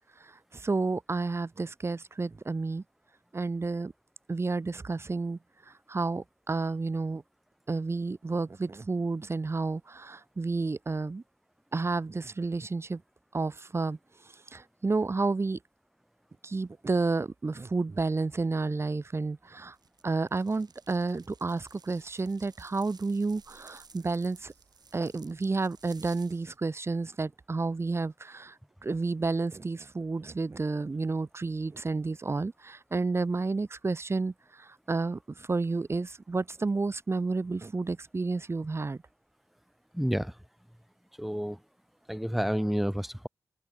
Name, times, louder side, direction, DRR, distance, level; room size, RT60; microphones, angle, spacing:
voice 1, 0.5-2.8 3.3-3.9 4.3-5.4 5.9-7.2 7.7-11.2 11.7-13.0 13.3-14.0 14.5-15.6 16.4-19.7 20.0-24.5 24.9-28.5 28.8-34.3 34.6-39.0, right 3 dB, 35° right, 0.6 m, -31 dB
sound 1, 19.8-26.6, right 5 dB, 70° right, 4.3 m, -57 dB
voice 2, 39.9-40.3 41.2-41.6 42.1-43.3, equal, ahead, 2.3 m, -29 dB
cardioid pair, 40°, 7 cm